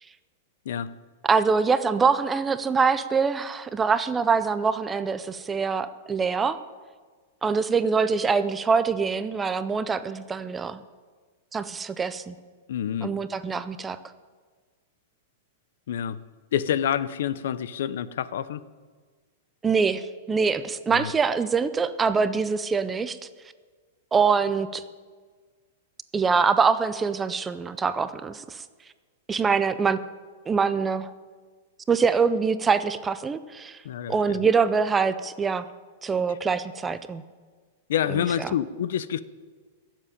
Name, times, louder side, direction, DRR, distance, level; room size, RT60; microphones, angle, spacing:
voice 1, 1.2-6.6 7.4-10.8 11.5-12.3 13.0-14.0 19.6-23.2 24.1-24.8 26.1-28.6 29.3-30.0 30.5-31.1 31.9-33.8 34.1-35.6 36.0-37.2 38.1-38.5, right 5 dB, 10° right, 12 dB, 0.4 m, -24 dB
voice 2, 12.7-13.1 15.9-16.2 16.5-18.6 20.9-21.1 33.8-34.4 37.9-39.2, left 9 dB, 65° left, 16 dB, 0.7 m, -28 dB
15.5 x 7.5 x 10.0 m, 1.5 s
supercardioid pair, 170°, 0 cm